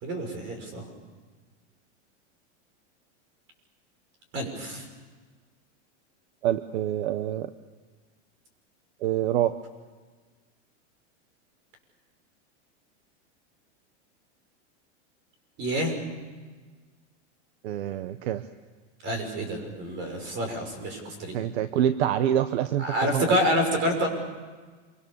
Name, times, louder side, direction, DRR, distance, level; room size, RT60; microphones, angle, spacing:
voice 1, 0.0-0.9 4.3-4.9 15.6-16.0 19.0-21.3 22.8-24.1, equal, 35° right, 5 dB, 5.9 m, -28 dB
voice 2, 6.4-7.5 9.0-9.6 17.6-18.4 21.3-23.3, right 11 dB, 65° right, 12 dB, 1.0 m, -26 dB
27.5 x 24.5 x 7.1 m, 1.4 s
supercardioid pair, 170°, 35 cm